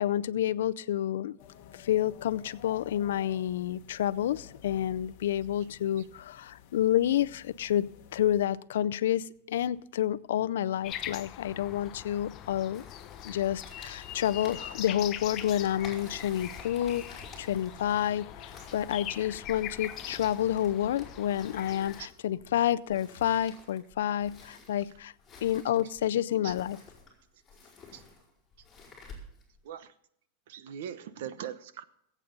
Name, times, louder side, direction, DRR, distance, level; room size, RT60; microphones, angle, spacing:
voice 1, 0.0-1.4 1.7-12.8 13.2-25.1 25.4-26.8, left 11 dB, 90° left, 16 dB, 0.5 m, -29 dB
sound 1, 1.4-8.5, left 10 dB, 55° left, 1.2 m, -53 dB
sound 2, 10.8-22.0, left 11 dB, 35° left, 0.9 m, -42 dB
sound 3, 12.7-29.6, left 3 dB, 15° left, 4.8 m, -51 dB
voice 2, 30.5-31.8, right 9 dB, 70° right, 13 dB, 0.9 m, -40 dB
21.5 x 8.4 x 3.9 m, 0.71 s
supercardioid pair, 155°, 0 cm